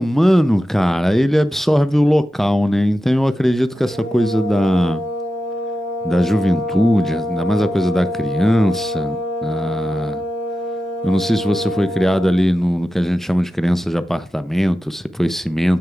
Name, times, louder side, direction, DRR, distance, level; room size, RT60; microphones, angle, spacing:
voice 1, 0.0-5.0 6.0-10.2 11.0-15.8, equal, ahead, 0.5 m, -18 dB
sound 1, 3.7-12.5, left 1 dB, 90° right, 2.0 m, -26 dB
6.7 x 6.4 x 2.4 m
cardioid pair, 90°, 20 cm